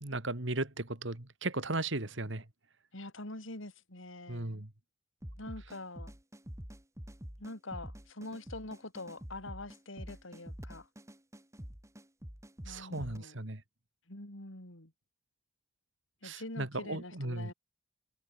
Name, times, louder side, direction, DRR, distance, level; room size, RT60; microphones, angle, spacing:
voice 1, 0.0-2.4 4.3-4.7 12.7-13.6 16.2-17.5, right 2 dB, 60° right, 2.5 m, -36 dB
voice 2, 2.9-4.6 5.4-6.1 7.4-10.9 12.6-13.4 14.1-14.9 16.2-17.5, left 2 dB, 70° left, 4.3 m, -45 dB
sound 1, 5.2-13.2, equal, 15° right, 2.4 m, -47 dB
head